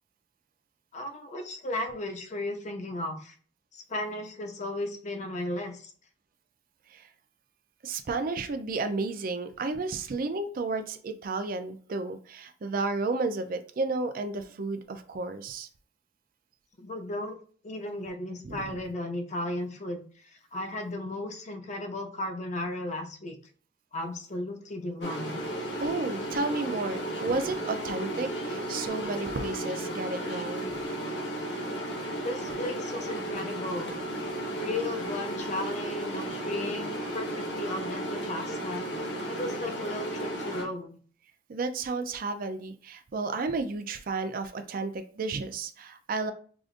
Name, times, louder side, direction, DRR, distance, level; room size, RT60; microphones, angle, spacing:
voice 1, 0.9-3.3 3.7-5.9 16.8-17.4 17.6-23.4 23.9-25.4 32.2-33.9 34.6-38.9 39.3-41.0, left 1 dB, 40° left, 5 dB, 0.7 m, -35 dB
voice 2, 7.8-15.7 18.4-18.6 25.8-30.7 41.5-46.3, right 3 dB, 50° right, 8 dB, 0.5 m, -32 dB
sound 1, 25.0-40.6, right 1 dB, 75° left, 1.0 m, -34 dB
4.8 x 2.5 x 2.5 m, 0.44 s
head